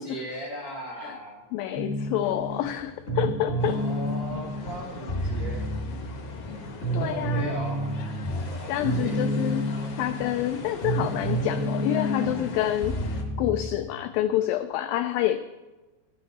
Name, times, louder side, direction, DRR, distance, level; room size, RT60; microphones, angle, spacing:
voice 1, 0.0-1.4 3.5-5.7 6.9-7.8 8.5-9.2, right 1 dB, 75° right, -1 dB, 0.8 m, -38 dB
voice 2, 1.5-3.8 6.9-7.6 8.7-9.7 10.0-12.9 13.4-15.4, left 12 dB, 85° left, 11 dB, 2.0 m, -27 dB
sound 1, 1.7-13.8, right 1 dB, 55° left, 0.7 m, -30 dB
sound 2, 3.6-13.2, left 3 dB, 70° left, 1.4 m, -41 dB
13.0 x 11.5 x 4.2 m, 1.2 s
omnidirectional pair, 4.6 m